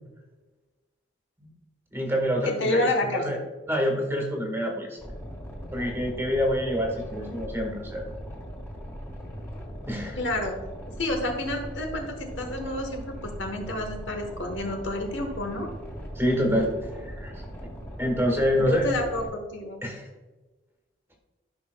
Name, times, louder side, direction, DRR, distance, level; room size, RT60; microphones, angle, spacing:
voice 1, 1.9-3.4 3.7-5.0 5.7-8.0 9.9-10.2 16.1-17.4 18.0-18.9 19.8-20.1, equal, 10° right, 0 dB, 1.5 m, -27 dB
voice 2, 2.4-3.4 10.2-10.6 11.0-15.7 18.6-19.8, left 1 dB, 65° left, 4 dB, 1.2 m, -29 dB
Boat Water vehicle, 5.0-19.3, equal, 15° left, 1.6 m, -39 dB
13.5 x 5.8 x 2.3 m, 1.2 s
head